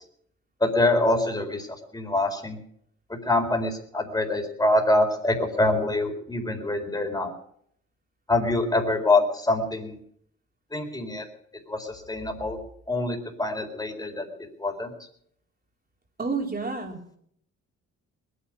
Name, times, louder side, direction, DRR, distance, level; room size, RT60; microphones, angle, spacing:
voice 1, 0.6-1.7 1.9-2.6 3.3-7.3 8.3-9.9 10.7-11.2 11.7-12.6 12.9-14.2 14.6-14.9, left 2 dB, 15° left, 3 dB, 4.3 m, -25 dB
voice 2, 16.2-17.2, right 4 dB, 30° right, 1 dB, 4.3 m, -30 dB
20.5 x 10.0 x 6.5 m, 0.67 s
cardioid pair, 90°, 30 cm